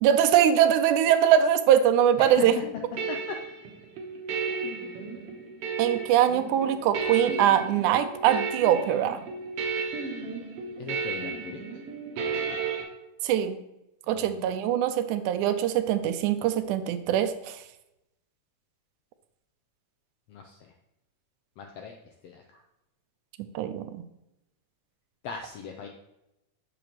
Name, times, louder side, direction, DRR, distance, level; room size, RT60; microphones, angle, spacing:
voice 1, 0.0-2.5 5.8-9.2 13.2-13.6 14.1-17.6 23.6-24.0, right 10 dB, 85° right, 10 dB, 2.0 m, -22 dB
sound 1, 2.3-12.8, right 5 dB, 60° right, 1.9 m, -34 dB
voice 2, 10.8-11.6 14.1-14.5 20.3-20.6 21.6-21.9 22.2-22.4 25.2-25.9, left 7 dB, 85° left, 3 dB, 1.4 m, -39 dB
7.8 x 6.4 x 3.0 m, 0.90 s
omnidirectional pair, 3.5 m